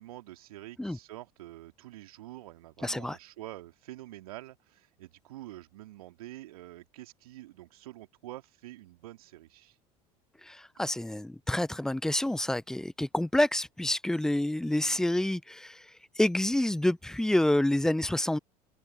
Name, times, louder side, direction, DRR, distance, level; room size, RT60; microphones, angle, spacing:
voice 1, 0.0-9.8 14.8-15.0, right 15 dB, 65° right, 2.0 m, -47 dB
voice 2, 2.8-3.2 10.5-15.8 16.2-18.4, left 1 dB, 5° left, 0.4 m, -28 dB
open air
figure-of-eight pair, 70°, 20 cm